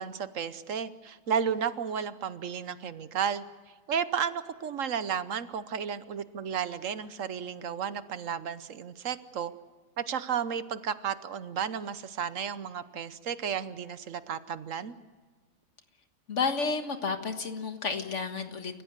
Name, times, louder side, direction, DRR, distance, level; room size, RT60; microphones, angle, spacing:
voice 1, 0.0-3.4 3.9-9.5 10.0-14.9, right 7 dB, 70° right, 13 dB, 1.3 m, -33 dB
voice 2, 16.3-18.8, left 4 dB, 60° left, 7 dB, 1.9 m, -31 dB
29.0 x 15.5 x 8.1 m, 1.4 s
omnidirectional pair, 1.4 m